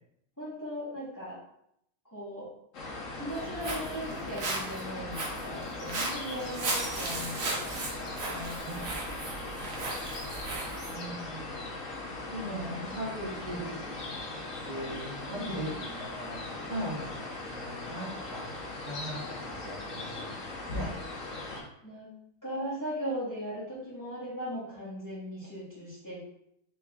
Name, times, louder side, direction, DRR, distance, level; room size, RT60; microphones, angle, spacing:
voice 1, 0.4-1.4 2.0-2.5 3.1-9.6 12.4-13.0 15.3-15.8 21.8-22.1 22.4-26.2, equal, 10° left, -8 dB, 1.2 m, -39 dB
sound 1, 2.7-21.6, left 2 dB, 50° left, 1.0 m, -39 dB
Walk footsteps, 3.3-10.9, right 2 dB, 50° right, 1.1 m, -36 dB
voice 2, 10.9-11.7 12.3-14.0 14.6-17.1 17.5-18.5 18.8-20.4 20.7-20.9, right 1 dB, 35° right, -7 dB, 0.8 m, -39 dB
3.7 x 3.5 x 3.5 m, 0.74 s
omnidirectional pair, 2.3 m